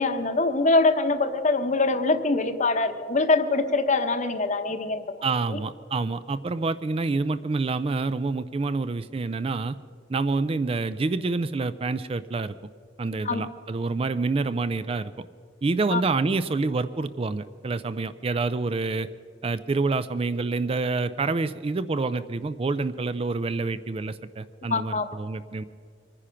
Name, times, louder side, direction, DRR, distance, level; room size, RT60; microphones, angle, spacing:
voice 1, 0.0-5.2 5.5-5.6 13.2-13.4 15.9-16.0 24.7-25.1, left 3 dB, 40° left, 9 dB, 0.9 m, -23 dB
voice 2, 5.2-9.7 10.1-12.5 13.0-15.3 15.6-19.1 19.4-25.6, right 3 dB, 30° right, 14 dB, 0.4 m, -27 dB
24.5 x 9.9 x 5.8 m, 2.2 s
head